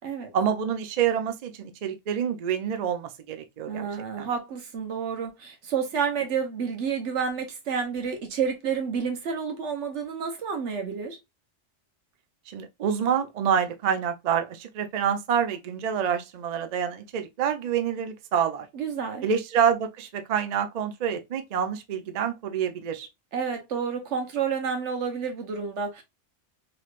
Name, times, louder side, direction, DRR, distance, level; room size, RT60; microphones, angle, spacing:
voice 1, 0.3-3.9 4.2-4.3 12.5-18.7 19.2-23.1, right 8 dB, 55° right, 0.4 m, -27 dB
voice 2, 3.7-11.2 18.7-19.2 23.3-26.0, right 6 dB, 85° right, 1.2 m, -30 dB
3.1 x 3.1 x 2.4 m
omnidirectional pair, 1.2 m